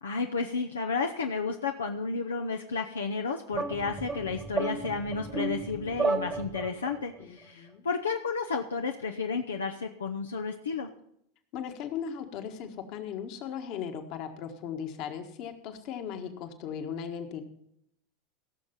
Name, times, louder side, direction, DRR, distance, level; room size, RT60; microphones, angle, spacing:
voice 1, 0.0-10.9, left 4 dB, 85° left, 3 dB, 0.7 m, -32 dB
sound 1, 3.5-7.0, right 4 dB, 25° right, 1.3 m, -33 dB
voice 2, 7.2-7.8 11.5-17.4, left 8 dB, 55° left, 6 dB, 1.6 m, -37 dB
16.5 x 6.6 x 5.5 m, 0.74 s
hypercardioid pair, 85°, 0 cm